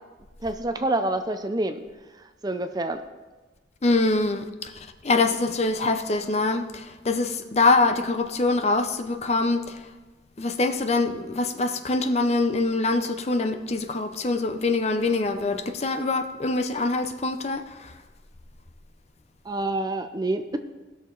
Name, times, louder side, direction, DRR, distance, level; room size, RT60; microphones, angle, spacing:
voice 1, 0.4-1.8 2.4-3.0 19.5-20.6, right 2 dB, 20° right, 0.5 m, -27 dB
voice 2, 3.8-4.7 5.0-9.8 10.4-17.9, left 3 dB, 35° left, 0.6 m, -24 dB
18.5 x 6.6 x 3.9 m
head